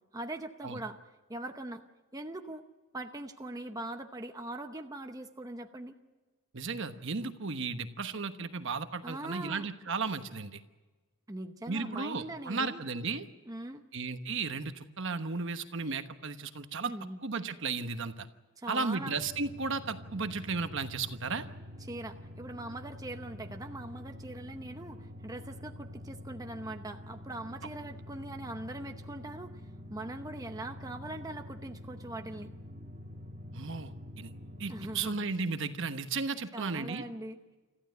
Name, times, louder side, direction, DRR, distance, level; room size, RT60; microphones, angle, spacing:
voice 1, 0.1-1.0 1.3-1.8 2.1-2.7 2.9-6.0 9.0-9.7 11.3-12.8 13.5-13.8 16.8-17.3 18.6-19.2 21.8-29.6 29.9-32.5 34.7-35.3 36.5-37.4, right 1 dB, 15° right, 5 dB, 0.8 m, -41 dB
voice 2, 6.5-10.6 11.7-13.3 13.9-16.9 17.2-18.3 18.7-21.5 33.5-34.3 34.6-37.0, right 4 dB, 60° right, 9 dB, 1.1 m, -34 dB
sound 1, 19.1-35.2, left 1 dB, 35° right, 1.8 m, -47 dB
26.0 x 14.5 x 9.3 m, 1.2 s
head